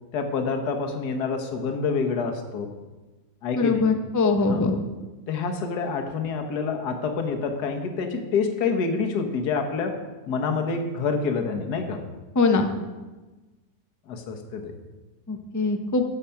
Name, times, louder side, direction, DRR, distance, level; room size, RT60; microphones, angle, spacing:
voice 1, 0.1-2.7 3.4-3.8 4.4-4.7 5.3-10.0 10.3-12.0 14.1-14.7, left 5 dB, 75° left, 5 dB, 1.6 m, -27 dB
voice 2, 3.5-4.7 12.3-12.7 15.3-16.0, left 3 dB, 25° left, 5 dB, 0.3 m, -22 dB
14.0 x 4.8 x 5.7 m, 1.2 s
omnidirectional pair, 1.7 m